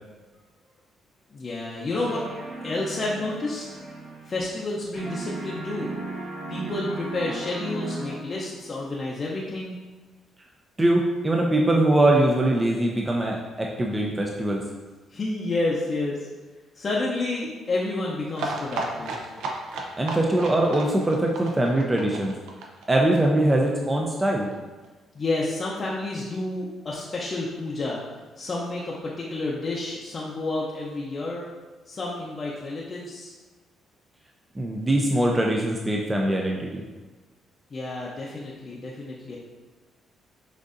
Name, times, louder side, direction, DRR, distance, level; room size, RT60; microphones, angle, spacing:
voice 1, 1.3-2.2 2.6-3.6 4.2-6.0 6.5-9.8 15.1-16.3 16.7-19.2 25.1-28.0 28.4-31.4 31.9-33.3 37.7-39.4, left 2 dB, 40° left, -4 dB, 0.6 m, -30 dB
sound 1, 2.0-4.7 5.0-8.6, right 3 dB, 60° right, 1.3 m, -36 dB
voice 2, 10.8-14.6 20.0-22.3 22.9-24.5 34.6-36.8, right 1 dB, 20° right, 0 dB, 0.4 m, -22 dB
sound 2, 18.4-23.9 24.2-24.3 24.5-24.6 24.8-24.9, right 2 dB, 90° right, 0.5 m, -33 dB
6.2 x 2.6 x 2.5 m, 1.3 s
cardioid pair, 90°, 0 cm